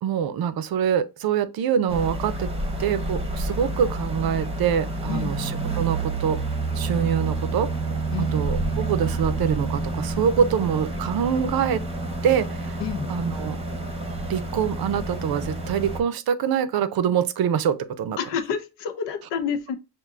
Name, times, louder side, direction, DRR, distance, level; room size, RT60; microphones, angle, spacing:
voice 1, 0.0-2.5 2.8-6.4 6.8-7.7 8.2-11.8 12.2-12.8 13.1-13.6 14.3-18.2, right 8 dB, 60° right, 0.6 m, -25 dB
sound 1, 1.9-16.0, right 2 dB, 15° right, 0.7 m, -29 dB
voice 2, 18.2-19.8, left 7 dB, 90° left, 0.8 m, -29 dB
6.0 x 2.5 x 2.4 m
cardioid pair, 150°, 42 cm